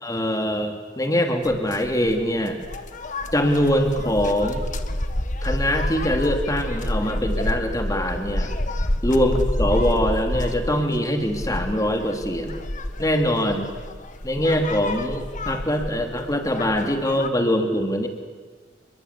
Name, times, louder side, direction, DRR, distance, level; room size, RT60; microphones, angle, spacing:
voice 1, 0.0-2.6 3.3-4.6 5.4-8.5 9.0-12.5 13.0-13.7 14.2-18.1, equal, 20° left, 4 dB, 3.1 m, -23 dB
sound 1, 1.4-17.3, left 1 dB, 40° left, 1.7 m, -29 dB
29.0 x 23.5 x 8.5 m, 1.4 s
head